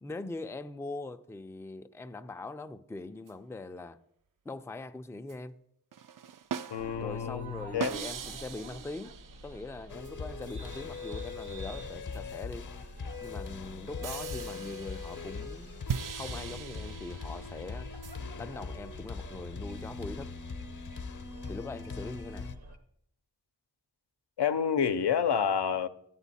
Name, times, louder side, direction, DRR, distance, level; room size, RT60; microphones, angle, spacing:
voice 1, 0.0-4.0 4.4-5.5 7.0-12.7 13.2-15.8 16.2-17.9 18.4-20.3 21.5-22.5, left 2 dB, 5° left, 0.4 m, -42 dB
sound 1, 3.3-3.4 5.3-5.4 5.9-7.2 7.8-10.1 12.1-12.2 14.0-18.2, right 8 dB, 55° right, 0.5 m, -40 dB
voice 2, 6.7-7.9 24.4-25.9, left 7 dB, 85° left, 0.6 m, -29 dB
sound 2, 6.8-22.8, right 1 dB, 70° right, 1.1 m, -49 dB
sound 3, 9.9-22.6, left 4 dB, 50° left, 0.8 m, -41 dB
11.0 x 8.2 x 4.1 m
cardioid pair, 50°, 39 cm